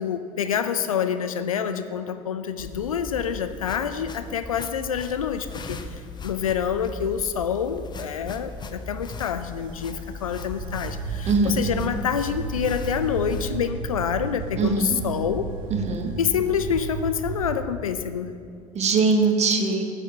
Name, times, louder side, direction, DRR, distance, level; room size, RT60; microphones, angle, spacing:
voice 1, 0.0-5.8 6.2-15.5 16.2-18.3, left 8 dB, 85° left, 11 dB, 0.4 m, -27 dB
sound 1, 2.6-13.5, left 3 dB, 25° left, 0.6 m, -38 dB
sound 2, 9.2-17.6, right 5 dB, 80° right, 0.5 m, -34 dB
voice 2, 11.3-11.6 14.6-15.0 15.7-16.1 18.7-19.8, right 4 dB, 40° right, 5 dB, 1.1 m, -22 dB
8.5 x 4.2 x 7.1 m, 2.5 s
figure-of-eight pair, 60°, 17 cm